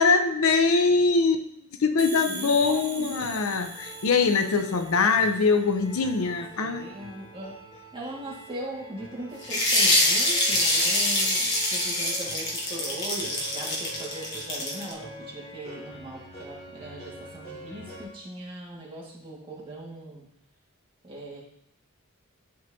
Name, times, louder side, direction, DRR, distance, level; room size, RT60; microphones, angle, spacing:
voice 1, 0.0-1.4 1.8-6.9, left 4 dB, 75° left, 7 dB, 0.6 m, -23 dB
sound 1, 2.0-5.6, right 3 dB, 85° right, 2.0 m, -41 dB
voice 2, 2.3-3.1 6.3-7.5 7.9-20.2 21.0-21.4, right 1 dB, 25° right, -5 dB, 1.7 m, -39 dB
sound 2, 2.6-18.0, right 1 dB, 30° left, 2.3 m, -46 dB
sound 3, 9.4-14.9, left 1 dB, 50° left, 1.3 m, -25 dB
11.0 x 4.0 x 2.7 m, 0.71 s
head